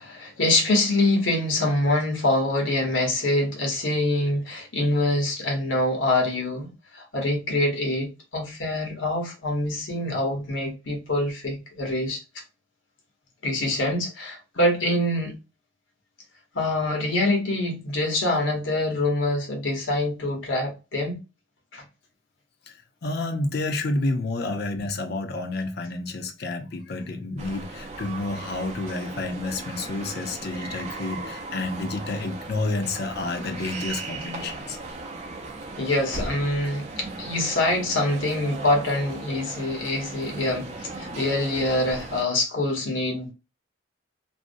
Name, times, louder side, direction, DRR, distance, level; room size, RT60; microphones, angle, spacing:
voice 1, 0.0-6.7 6.9-12.2 13.4-15.4 16.5-21.2 21.7-21.8 35.8-43.3, left 1 dB, 85° left, 1.0 m, -25 dB
voice 2, 23.0-34.8, left 2 dB, 55° left, 0.6 m, -30 dB
sound 1, 27.4-42.2, right 3 dB, 35° right, 0.5 m, -37 dB
2.6 x 2.0 x 2.5 m
head